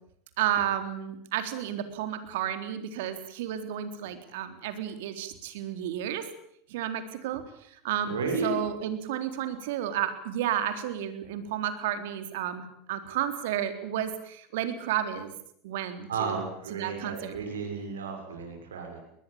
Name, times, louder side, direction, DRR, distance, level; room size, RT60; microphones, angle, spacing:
voice 1, 0.4-6.3 6.7-8.1 8.4-15.3 15.6-17.4, right 10 dB, 75° right, 9 dB, 3.8 m, -32 dB
voice 2, 8.0-8.5 16.1-19.0, right 4 dB, 90° right, 3 dB, 6.5 m, -33 dB
21.5 x 21.0 x 8.9 m, 0.71 s
hypercardioid pair, 90°, 0 cm